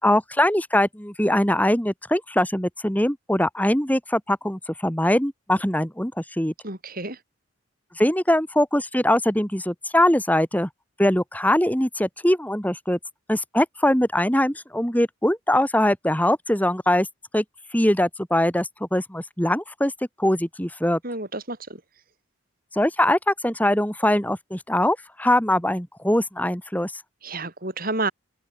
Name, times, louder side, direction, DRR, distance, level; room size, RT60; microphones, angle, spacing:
voice 1, 0.0-6.5 8.0-10.7 11.0-13.0 13.3-17.1 17.3-17.4 17.7-19.9 20.2-21.0 22.7-26.9, left 1 dB, 10° left, 3.5 m, -22 dB
voice 2, 6.6-7.2 21.0-21.8 27.2-28.1, right 3 dB, 45° right, 7.1 m, -30 dB
open air
head